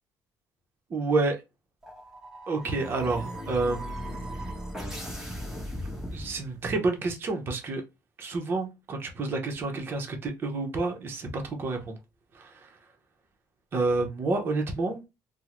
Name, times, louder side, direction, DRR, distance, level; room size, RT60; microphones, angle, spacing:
voice 1, 0.9-1.4 2.5-4.6 6.1-7.8 8.2-12.0 12.3-12.7 13.7-15.0, right 3 dB, 30° right, 0.7 m, -29 dB
sound 1, 1.8-6.8, equal, 5° right, 0.9 m, -37 dB
3.5 x 2.0 x 2.9 m
cardioid pair, 165°, 7 cm